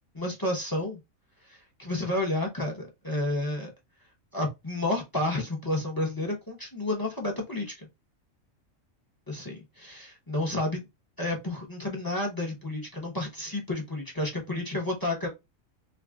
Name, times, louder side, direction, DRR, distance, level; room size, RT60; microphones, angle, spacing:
voice 1, 0.1-1.0 1.4-3.7 4.3-7.9 9.3-10.9 11.2-15.3, left 1 dB, 20° left, 0.6 m, -31 dB
2.5 x 2.3 x 3.4 m
omnidirectional pair, 1.4 m